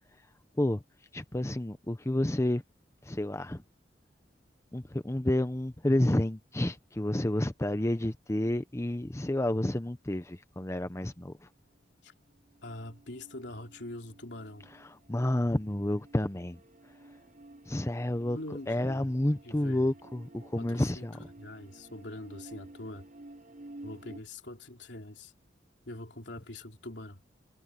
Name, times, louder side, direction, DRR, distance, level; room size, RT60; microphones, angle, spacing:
voice 1, 1.1-2.6 3.0-3.6 4.7-11.5 14.7-16.6 17.7-18.4 18.7-21.2, left 1 dB, 15° left, 0.7 m, -30 dB
sound 1, 12.3-24.2, right 2 dB, 50° right, 3.0 m, -52 dB
voice 2, 12.6-14.7 18.3-19.1 19.4-19.9 20.6-21.1 21.4-23.1 23.8-25.3 25.9-27.2, left 1 dB, 75° left, 3.2 m, -43 dB
head